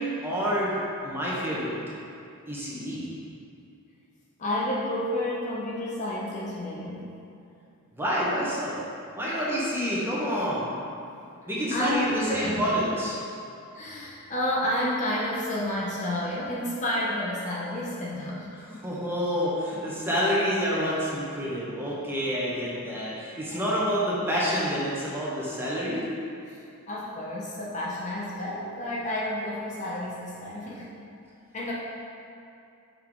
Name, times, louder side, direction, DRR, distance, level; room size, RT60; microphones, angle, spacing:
voice 1, 0.0-1.8 2.5-3.1 7.9-8.8 9.1-10.8 11.5-13.2 18.8-26.1, equal, 10° right, -7 dB, 1.1 m, -28 dB
voice 2, 4.4-7.1 11.7-12.7 13.7-18.5 23.5-23.8 26.5-26.6 26.9-30.9 31.5-31.7, left 1 dB, 35° left, -5 dB, 0.7 m, -30 dB
5.7 x 4.0 x 4.5 m, 2.6 s
head